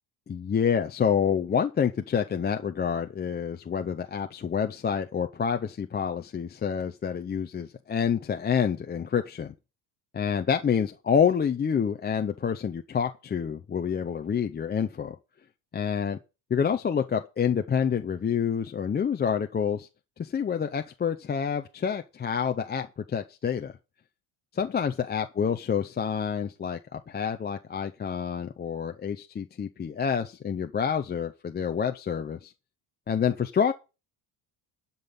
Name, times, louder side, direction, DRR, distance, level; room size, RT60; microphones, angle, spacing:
voice 1, 0.3-9.5 10.1-15.2 15.7-16.2 16.5-19.9 20.2-23.8 24.5-32.5 33.1-33.7, left 7 dB, 20° left, 0.6 m, -28 dB
12.0 x 5.4 x 7.1 m
cardioid pair, 155°, 47 cm